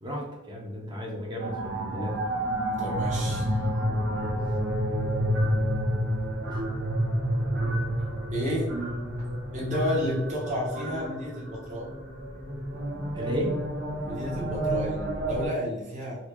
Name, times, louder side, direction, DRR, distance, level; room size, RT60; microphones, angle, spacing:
voice 1, 0.0-2.2 4.1-4.4 6.5-6.6 13.1-13.5, equal, 25° right, -2 dB, 0.8 m, -33 dB
sound 1, 1.4-15.5, equal, 60° right, 0.7 m, -29 dB
voice 2, 2.8-3.9 7.2-7.4 8.3-8.9 9.5-11.9 14.0-16.2, equal, 40° right, -4 dB, 1.1 m, -32 dB
4.1 x 2.3 x 3.0 m, 0.95 s
head